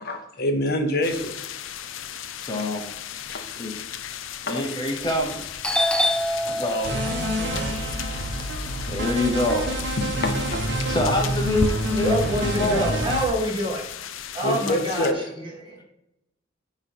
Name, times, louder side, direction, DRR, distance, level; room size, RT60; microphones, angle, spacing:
voice 1, 0.1-1.4 3.3-3.5 4.5-4.6 10.0-10.7 14.4-15.2, left 1 dB, 55° left, 0.9 m, -26 dB
sound 1, 1.0-15.1, left 10 dB, 90° left, 0.5 m, -37 dB
voice 2, 2.4-2.9 3.6-3.8 4.5-5.5 6.4-7.2 8.4-8.5 8.9-9.8 10.9-12.9, left 1 dB, 20° left, 1.0 m, -26 dB
Doorbell, 5.0-5.3 5.6-9.8 10.1-11.7, left 1 dB, 5° left, 0.4 m, -27 dB
sound 2, 6.8-13.3, right 1 dB, 60° right, 1.2 m, -27 dB
voice 3, 12.0-13.8 14.3-15.8, equal, 25° right, 2.0 m, -27 dB
9.4 x 3.2 x 5.9 m
head